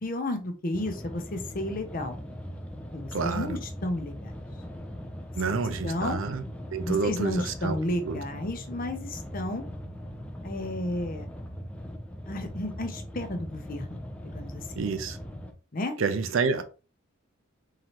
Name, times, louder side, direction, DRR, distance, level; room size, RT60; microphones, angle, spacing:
voice 1, 0.0-2.2 2.9-4.3 5.5-5.6 5.8-6.2 6.8-9.6 10.4-11.3 12.3-14.9 15.7-16.0, left 1 dB, 40° left, 0.7 m, -32 dB
sound 1, 0.7-15.5, equal, 5° left, 0.4 m, -40 dB
voice 2, 3.1-3.6 5.4-6.4 6.7-7.8 8.1-8.2 14.8-15.2 16.0-16.6, right 4 dB, 65° right, 0.5 m, -28 dB
3.7 x 3.1 x 2.9 m
head